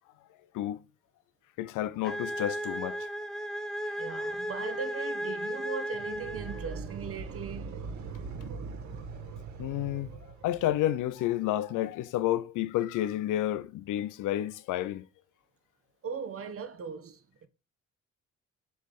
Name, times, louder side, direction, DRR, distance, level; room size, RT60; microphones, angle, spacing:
voice 1, 1.6-3.1 9.6-10.1 10.4-15.1, left 13 dB, 85° left, 0.6 m, -30 dB
sound 1, 2.0-6.9, equal, ahead, 0.7 m, -35 dB
voice 2, 4.0-7.8 16.0-17.2, right 6 dB, 50° right, 1.1 m, -39 dB
Space monster Roar, 5.9-11.1, right 4 dB, 70° right, 1.6 m, -41 dB
7.9 x 3.2 x 5.1 m
cardioid pair, 90°, 30 cm